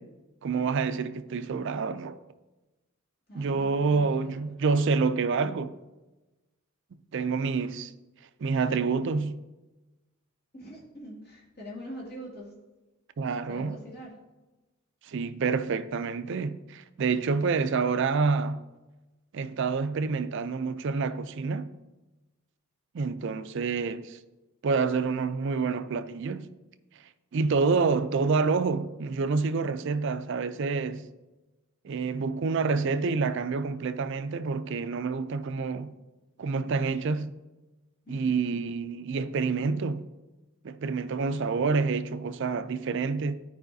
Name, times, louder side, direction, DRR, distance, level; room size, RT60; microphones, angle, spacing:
voice 1, 0.4-2.2 3.3-5.7 7.1-7.9 8.4-9.4 13.2-13.8 15.0-18.6 19.3-21.7 22.9-24.2 24.6-26.5 27.3-31.1 31.8-35.9 36.4-37.3 38.1-40.1 40.6-43.3, right 4 dB, 55° right, 0.4 m, -28 dB
voice 2, 3.3-4.4 10.5-12.5 13.5-14.1 38.1-38.4, equal, 45° left, 2.2 m, -43 dB
12.5 x 4.8 x 2.7 m
head